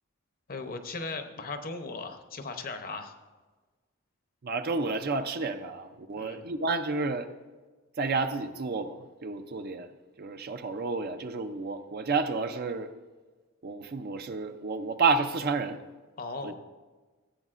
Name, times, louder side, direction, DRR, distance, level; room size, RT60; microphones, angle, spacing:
voice 1, 0.5-3.2 6.1-6.5 16.2-16.5, left 3 dB, 45° left, 7 dB, 0.8 m, -37 dB
voice 2, 4.4-7.3 8.0-9.9 10.2-12.9 13.6-15.8 16.4-16.5, right 4 dB, 50° right, 8 dB, 0.5 m, -30 dB
15.0 x 8.1 x 2.5 m, 1.3 s
head